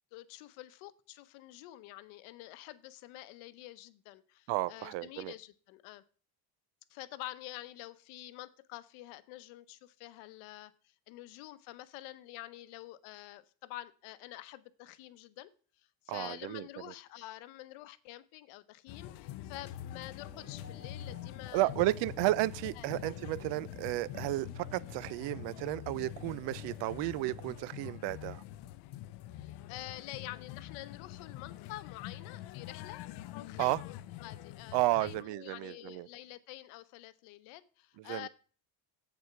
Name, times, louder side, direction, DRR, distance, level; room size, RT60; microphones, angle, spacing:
voice 1, 0.1-6.0 6.9-21.9 22.8-22.9 29.3-33.0 33.3-38.3, left 16 dB, 80° left, 0.9 m, -48 dB
voice 2, 4.5-5.3 16.1-16.7 21.5-28.4 33.6-33.8 34.7-36.1 38.1-38.3, right 18 dB, 60° right, 0.5 m, -33 dB
sound 1, 18.9-35.2, left 13 dB, 55° left, 0.6 m, -45 dB
sound 2, 20.2-27.8, right 2 dB, 10° right, 1.6 m, -56 dB
8.0 x 6.9 x 5.7 m
cardioid pair, 155°, 48 cm